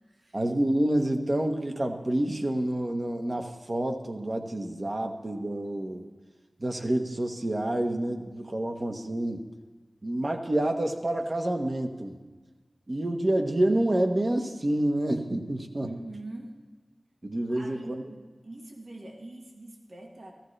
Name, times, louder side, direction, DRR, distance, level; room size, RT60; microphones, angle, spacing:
voice 1, 0.3-6.1 6.6-9.4 10.0-12.2 12.9-15.9 17.2-18.1, right 1 dB, 45° right, 4 dB, 1.2 m, -28 dB
voice 2, 15.8-16.5 17.5-20.3, right 2 dB, 75° right, 0 dB, 1.6 m, -43 dB
14.5 x 14.5 x 3.3 m, 1.3 s
wide cardioid pair, 65°, 0 cm